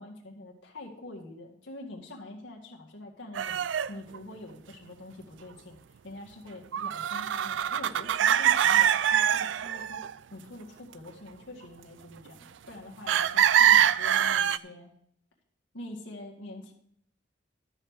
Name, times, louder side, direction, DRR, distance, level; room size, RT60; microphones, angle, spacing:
voice 1, 0.0-5.8 6.0-10.0 10.3-14.9 15.7-16.7, left 1 dB, 80° left, 0 dB, 2.2 m, -45 dB
sound 1, 3.3-4.2 6.7-10.1 13.1-14.6, right 9 dB, 70° right, 0.4 m, -24 dB
13.0 x 5.6 x 6.5 m, 0.68 s
head